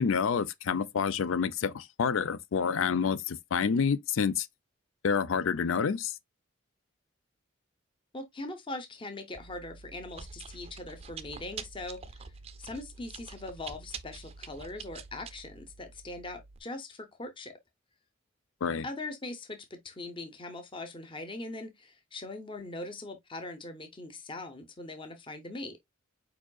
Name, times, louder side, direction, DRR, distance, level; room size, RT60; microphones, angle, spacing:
voice 1, 0.0-4.5 5.0-6.1 18.6-18.9, left 6 dB, 85° left, 0.4 m, -28 dB
voice 2, 8.1-12.3 12.6-17.5 18.8-25.8, left 2 dB, 25° left, 0.7 m, -41 dB
Chewing mastication, 9.3-16.6, right 5 dB, 30° right, 0.4 m, -46 dB
4.9 x 4.6 x 2.3 m
head